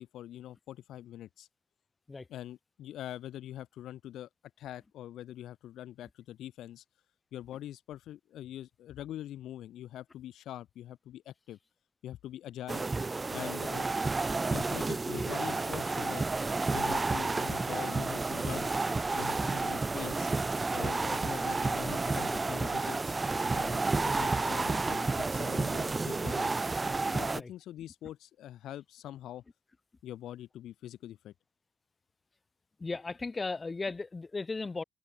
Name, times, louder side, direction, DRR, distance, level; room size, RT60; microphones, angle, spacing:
voice 1, 0.0-1.5 2.3-4.3 4.6-6.8 7.3-11.6 12.0-12.9 13.3-13.9 14.5-16.2 16.7-18.7 19.1-20.3 20.7-23.1 23.5-26.6 27.0-29.4 30.0-31.3, left 12 dB, 80° left, 1.6 m, -43 dB
sound 1, 12.7-27.4, right 3 dB, 25° right, 0.4 m, -31 dB
voice 2, 32.8-34.8, left 3 dB, 25° left, 3.3 m, -36 dB
open air
cardioid pair, 90°, 0 cm